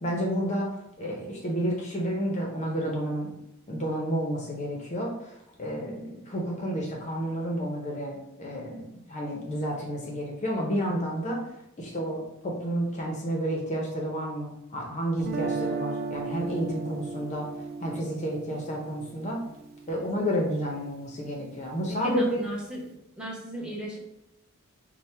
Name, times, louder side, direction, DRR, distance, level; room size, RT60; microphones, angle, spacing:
voice 1, 0.0-3.3 3.7-11.4 11.8-17.5 17.8-19.4 19.9-22.4, equal, 35° left, -1 dB, 0.6 m, -31 dB
Guitar, 15.2-21.2, right 4 dB, 45° right, 0.4 m, -36 dB
voice 2, 22.0-24.0, equal, 5° right, -4 dB, 0.8 m, -34 dB
4.3 x 2.0 x 3.2 m, 0.87 s
head